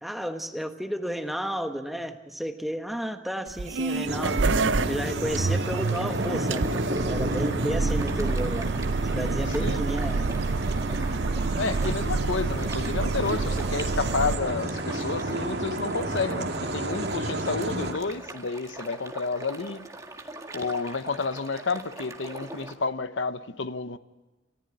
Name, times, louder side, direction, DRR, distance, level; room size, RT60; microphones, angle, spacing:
voice 1, 0.0-8.7 9.0-10.4 17.3-17.4, equal, ahead, 1.3 m, -32 dB
sound 1, 3.5-14.3, right 3 dB, 70° right, 0.7 m, -28 dB
sound 2, 4.1-17.9, right 1 dB, 55° right, 2.3 m, -31 dB
sound 3, 5.6-22.7, right 2 dB, 15° right, 1.8 m, -42 dB
voice 2, 11.6-19.9 20.5-24.0, left 4 dB, 75° left, 0.9 m, -30 dB
28.5 x 14.5 x 8.9 m
head